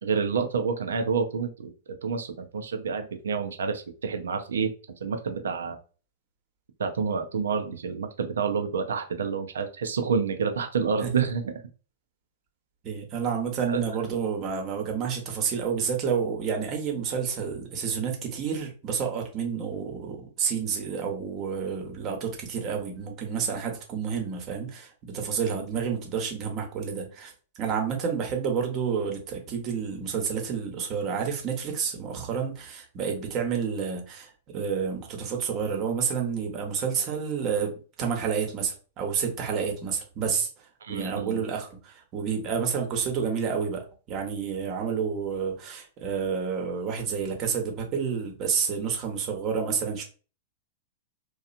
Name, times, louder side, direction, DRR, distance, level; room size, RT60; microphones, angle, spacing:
voice 1, 0.0-1.7 2.0-4.7 5.0-5.8 6.8-11.5 13.7-13.8 40.8-41.4, right 5 dB, 80° right, 6 dB, 0.6 m, -28 dB
voice 2, 12.8-27.3 27.6-37.7 38.0-40.5 40.9-50.0, right 6 dB, 40° right, 2 dB, 1.0 m, -29 dB
2.9 x 2.3 x 2.5 m, 0.36 s
hypercardioid pair, 110°, 0 cm